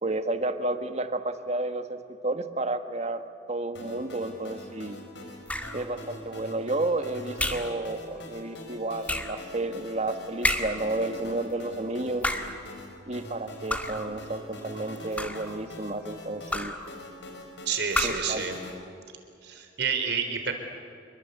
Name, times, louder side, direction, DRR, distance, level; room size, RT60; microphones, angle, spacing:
voice 1, 0.0-5.0 5.7-12.3 13.1-16.8 17.9-18.4, right 2 dB, 40° right, 8 dB, 1.6 m, -31 dB
sound 1, 3.7-18.7, left 1 dB, 90° left, 4.8 m, -43 dB
sound 2, 5.5-5.9 7.4-7.8 9.1-9.4 10.4-10.9 12.1-12.6 13.7-14.1 15.0-15.6 16.5-16.9 17.9-18.4, left 1 dB, 10° left, 1.8 m, -30 dB
voice 2, 17.7-18.6 19.4-20.5, right 6 dB, 65° right, 6 dB, 4.0 m, -29 dB
28.0 x 23.0 x 8.3 m, 2.5 s
head